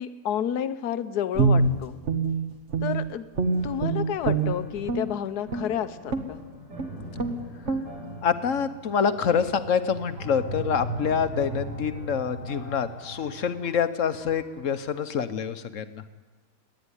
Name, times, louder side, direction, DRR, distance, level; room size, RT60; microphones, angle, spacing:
voice 1, 0.0-2.0 2.8-3.3 3.6-6.4, left 9 dB, 75° left, 12 dB, 1.4 m, -30 dB
Guitar, 1.3-3.1 3.3-5.1 5.5-5.7 6.1-6.4 6.8-6.9 7.2-7.4 7.6-7.9, right 4 dB, 45° right, 1.7 m, -25 dB
sound 1, 3.4-14.9, right 1 dB, 85° right, 5.4 m, -39 dB
voice 2, 8.2-16.0, left 7 dB, 55° left, 11 dB, 1.2 m, -26 dB
28.0 x 10.5 x 9.8 m, 1.3 s
omnidirectional pair, 1.7 m